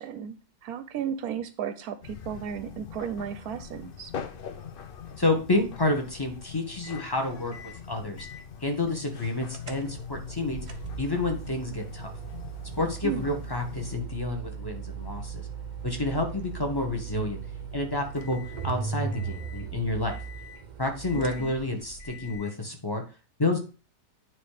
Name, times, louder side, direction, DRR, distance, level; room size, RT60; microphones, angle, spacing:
voice 1, 0.0-4.1 13.0-13.3 21.1-21.6, right 8 dB, 70° right, 11 dB, 1.0 m, -34 dB
sound 1, 2.0-14.0, left 7 dB, 65° left, 0.5 m, -43 dB
voice 2, 5.2-8.3 8.6-10.6 11.0-12.1 12.8-15.5 15.8-17.4 17.7-20.2 20.8-23.0 23.4-23.6, left 2 dB, 20° left, 3 dB, 0.8 m, -29 dB
sound 2, 6.8-7.1 7.5-7.8 8.2-18.7 19.1-19.7 20.1-20.6 21.0-21.6 22.0-22.5, left 7 dB, 85° left, 1.8 m, -46 dB
sound 3, 9.5-22.4, right 7 dB, 90° right, 0.4 m, -38 dB
9.1 x 3.1 x 4.8 m, 0.36 s
omnidirectional pair, 1.8 m